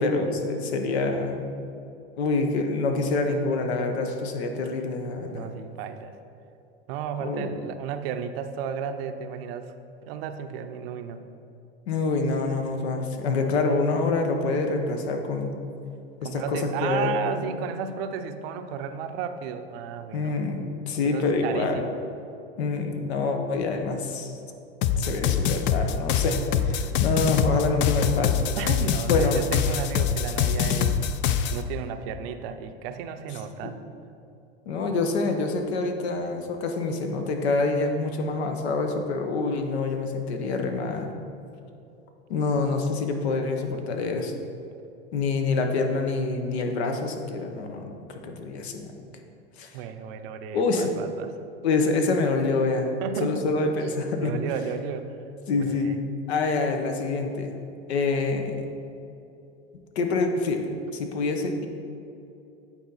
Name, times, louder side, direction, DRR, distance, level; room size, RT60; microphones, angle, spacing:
voice 1, 0.0-1.4 2.2-5.5 7.2-7.6 11.9-15.6 16.2-17.2 17.5-17.7 20.1-21.8 22.6-24.3 25.0-28.5 29.1-29.4 33.6-33.7 34.7-41.1 42.3-44.3 45.1-48.9 49.6-49.7 50.5-51.1 51.6-52.9 53.2-54.4 55.5-55.9 56.3-57.6 57.9-58.6 60.0-61.7, left 3 dB, 80° left, 5 dB, 0.9 m, -26 dB
voice 2, 5.3-6.2 6.9-9.7 10.0-11.2 16.2-20.3 21.0-22.0 28.6-31.0 31.5-33.8 49.7-51.3 53.0-53.5 54.2-55.2 55.5-56.0, right 7 dB, 65° right, 9 dB, 0.6 m, -33 dB
sound 1, 24.8-31.6, left 8 dB, 35° left, 0.4 m, -24 dB
9.1 x 4.2 x 4.0 m, 2.7 s
hypercardioid pair, 100°, 32 cm